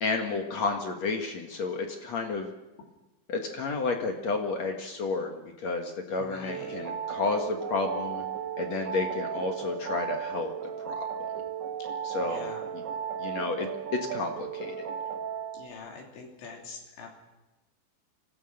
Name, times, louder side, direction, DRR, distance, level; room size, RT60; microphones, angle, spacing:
voice 1, 0.0-2.5 3.3-8.2 8.6-10.5 10.8-11.0 12.0-12.8 13.2-14.8, left 3 dB, 55° left, 4 dB, 2.0 m, -31 dB
voice 2, 6.2-6.8 11.8-11.9 12.2-12.7 15.5-17.1, left 4 dB, 75° left, 0 dB, 5.3 m, -44 dB
sound 1, 6.5-15.7, right 8 dB, 70° right, 3.0 m, -35 dB
25.5 x 17.0 x 6.5 m, 1.0 s
omnidirectional pair, 5.2 m